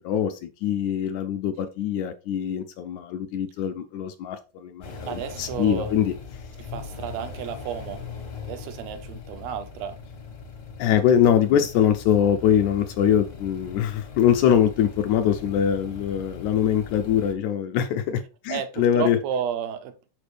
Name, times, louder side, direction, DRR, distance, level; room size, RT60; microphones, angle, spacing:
voice 1, 0.0-6.1 10.8-19.2, left 9 dB, 80° left, 1.7 m, -23 dB
sound 1, 4.8-17.3, left 5 dB, 55° left, 1.1 m, -40 dB
voice 2, 5.1-5.9 6.6-8.0 8.4-10.0 18.5-19.9, right 8 dB, 75° right, 1.5 m, -32 dB
6.7 x 5.0 x 3.3 m
omnidirectional pair, 3.8 m